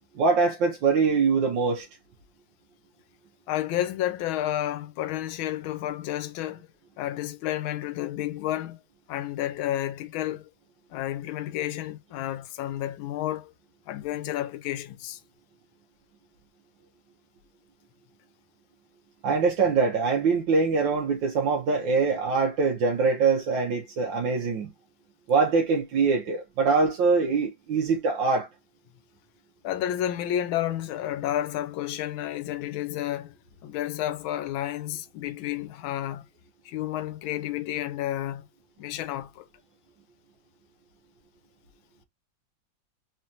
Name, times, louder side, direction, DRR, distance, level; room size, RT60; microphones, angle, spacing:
voice 1, 0.1-1.9 19.2-24.7 25.3-28.5, right 4 dB, 70° right, 1.5 m, -23 dB
voice 2, 3.5-6.7 7.0-8.8 9.1-10.5 10.9-13.5 13.9-15.2 29.6-33.3 33.6-36.2 36.6-38.4 38.8-39.4, left 12 dB, 85° left, 1.5 m, -31 dB
4.2 x 3.3 x 2.8 m
omnidirectional pair, 2.2 m